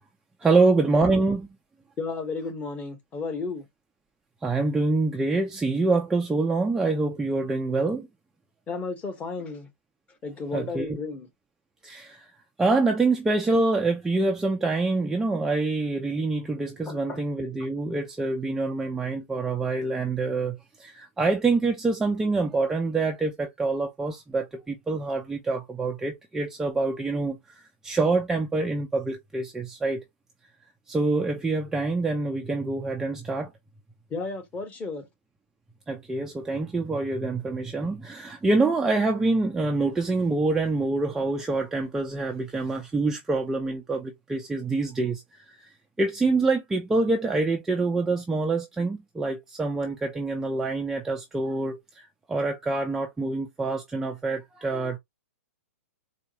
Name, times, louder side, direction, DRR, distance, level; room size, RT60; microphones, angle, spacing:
voice 1, 0.4-1.5 4.4-8.1 10.5-11.0 11.8-12.3 12.6-27.4 27.8-30.0 30.9-33.5 35.9-45.2 46.0-55.0, right 3 dB, 5° right, 0.4 m, -26 dB
voice 2, 2.0-3.7 8.7-9.7 10.2-11.3 16.8-17.2 34.1-35.1, left 4 dB, 15° left, 0.9 m, -33 dB
4.5 x 2.2 x 2.7 m
hypercardioid pair, 150°, 8 cm